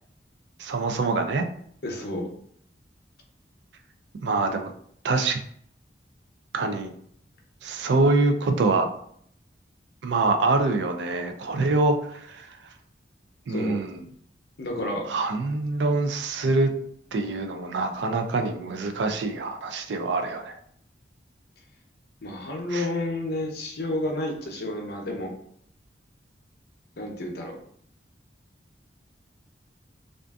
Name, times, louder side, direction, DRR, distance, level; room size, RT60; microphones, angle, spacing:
voice 1, 0.6-1.4 4.2-4.7 5.0-5.4 6.5-6.9 7.6-8.9 10.0-12.0 12.2-12.5 13.5-14.0 15.1-16.7 17.1-20.6 22.7-22.9, right 3 dB, 70° right, 6 dB, 0.4 m, -25 dB
voice 2, 1.8-2.3 13.5-13.7 14.6-15.1 22.2-25.3 27.0-27.6, left 1 dB, 60° left, 1 dB, 0.6 m, -30 dB
2.5 x 2.4 x 2.3 m, 0.65 s
head